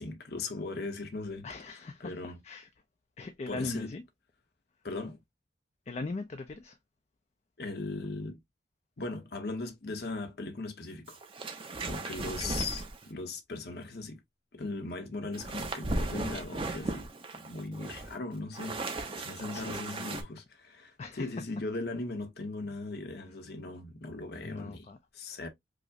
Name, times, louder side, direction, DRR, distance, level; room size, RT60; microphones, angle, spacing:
voice 1, 0.0-2.4 3.5-3.9 4.8-5.2 7.6-8.4 9.0-11.2 11.8-14.2 14.5-17.1 17.4-24.9 25.1-25.5, left 3 dB, 55° left, 0.7 m, -39 dB
voice 2, 1.4-2.1 2.4-2.7 3.2-4.0 5.9-6.8 12.4-12.5 19.5-20.1 21.0-21.3 24.4-25.0, left 3 dB, 35° left, 0.4 m, -39 dB
sound 1, 11.1-13.1 15.3-20.2, right 2 dB, 30° right, 0.6 m, -36 dB
4.8 x 2.0 x 2.5 m
head